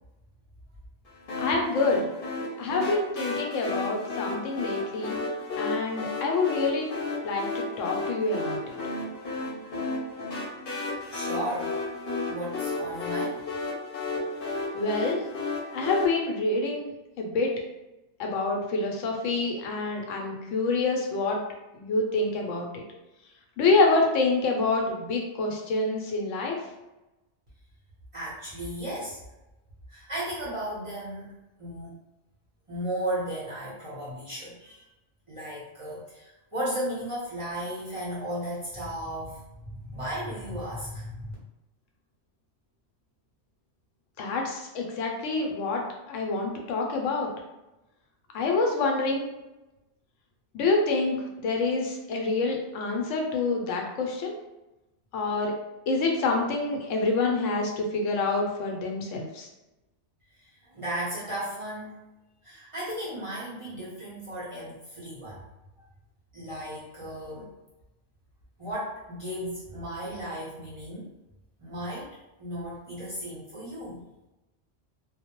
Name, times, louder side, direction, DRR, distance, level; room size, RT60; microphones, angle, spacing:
sound 1, 1.3-16.1, left 2 dB, 55° left, 0.7 m, -33 dB
voice 1, 1.4-2.1 2.6-5.2 5.6-6.8 7.2-8.8 14.7-15.2 15.7-16.9 17.2-17.5 18.2-21.4 21.7-22.8 23.6-26.6 44.2-45.8 46.1-47.3 48.3-49.3 50.5-54.3 55.1-55.5 55.9-59.5, left 3 dB, 90° left, 1 dB, 0.9 m, -27 dB
voice 2, 11.1-11.7 12.3-13.4 28.1-29.2 29.9-31.9 32.7-34.8 35.3-41.3 60.4-62.0 62.4-65.4 66.3-67.6 68.6-71.1 71.6-74.0, equal, 35° right, -8 dB, 0.6 m, -35 dB
2.2 x 2.0 x 2.9 m, 0.99 s
omnidirectional pair, 1.2 m